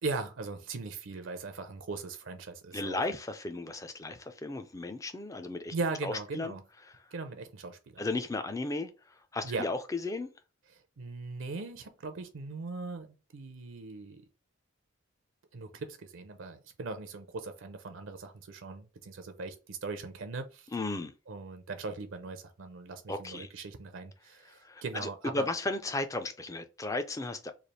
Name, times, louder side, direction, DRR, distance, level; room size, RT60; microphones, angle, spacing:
voice 1, 0.0-3.0 5.7-6.6 7.1-8.1 9.4-9.7 10.7-14.3 15.5-20.7 21.3-25.5, right 3 dB, 65° right, 0.5 m, -39 dB
voice 2, 2.7-5.7 6.0-6.6 6.8-6.9 8.0-8.9 9.3-10.3 20.7-21.1 23.1-23.5 24.6-27.5, left 2 dB, 15° left, 0.3 m, -35 dB
3.2 x 2.4 x 4.0 m
head